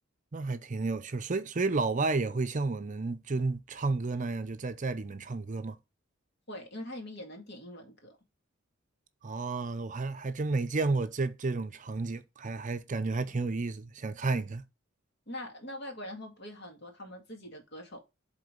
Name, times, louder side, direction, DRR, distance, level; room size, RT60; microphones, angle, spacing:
voice 1, 0.3-5.8 9.2-14.6, right 3 dB, 40° right, 0.6 m, -31 dB
voice 2, 6.5-8.1 15.3-18.0, left 1 dB, 55° left, 2.0 m, -43 dB
8.0 x 3.8 x 5.1 m
head